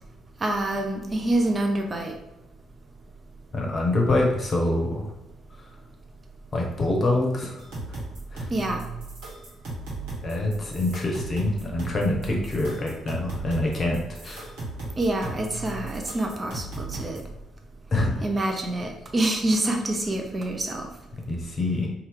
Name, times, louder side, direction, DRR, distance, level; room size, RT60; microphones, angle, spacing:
voice 1, 0.4-2.1 8.5-8.8 15.0-17.2 18.2-20.9, right 1 dB, 30° right, 2 dB, 0.5 m, -26 dB
voice 2, 3.5-5.1 5.6-5.7 6.5-8.0 8.3-8.5 10.2-14.5 17.9-18.2 21.3-21.9, left 2 dB, 40° left, 0 dB, 0.8 m, -26 dB
sound 1, 7.6-17.3, right 3 dB, 65° right, 1.1 m, -37 dB
2.8 x 2.3 x 3.4 m, 0.93 s
figure-of-eight pair, 45°, 0 cm